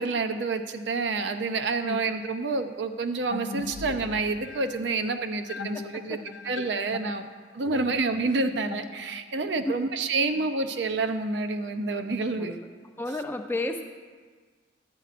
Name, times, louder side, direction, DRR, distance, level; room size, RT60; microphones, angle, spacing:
voice 1, 0.0-6.2 6.5-7.2 7.5-12.5, right 3 dB, 75° right, 8 dB, 0.6 m, -28 dB
sound 1, 3.3-9.5, left 5 dB, 80° left, 0.4 m, -41 dB
voice 2, 12.4-12.7 13.0-13.8, left 2 dB, 10° left, 4 dB, 0.5 m, -33 dB
12.0 x 9.1 x 2.5 m, 1.5 s
head